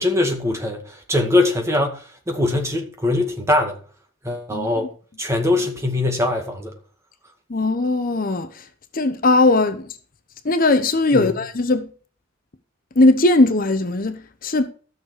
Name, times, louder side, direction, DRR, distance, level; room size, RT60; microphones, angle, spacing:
voice 1, 0.0-3.8 4.2-4.9 5.2-6.8 11.1-11.3, left 2 dB, 15° right, 1.9 m, -22 dB
voice 2, 7.5-8.7 8.9-10.0 10.4-11.9 13.0-14.7, left 2 dB, 45° left, 0.8 m, -19 dB
13.5 x 6.8 x 4.8 m
head